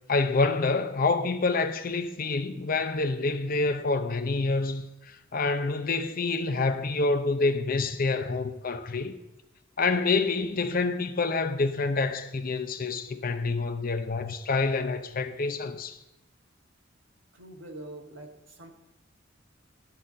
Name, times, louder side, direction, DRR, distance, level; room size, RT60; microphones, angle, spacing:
voice 1, 0.1-4.9 5.3-9.1 9.8-16.0, left 3 dB, 45° left, 0.6 m, -27 dB
voice 2, 17.3-18.7, right 1 dB, 80° right, 1.5 m, -44 dB
12.0 x 4.1 x 7.5 m
head